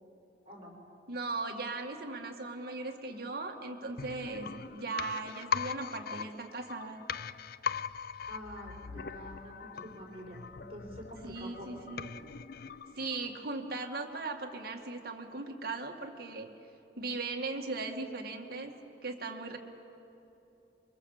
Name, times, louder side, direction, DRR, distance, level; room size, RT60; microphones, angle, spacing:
voice 1, 1.1-7.0 11.2-12.1 13.0-16.5 17.0-18.7 19.0-19.6, right 3 dB, 55° right, 3 dB, 2.1 m, -38 dB
sound 1, 4.0-13.7 14.0-14.1, left 6 dB, 55° left, 0.5 m, -40 dB
voice 2, 8.3-11.8, equal, 35° right, -1 dB, 5.8 m, -47 dB
26.0 x 23.5 x 7.4 m, 2.9 s
head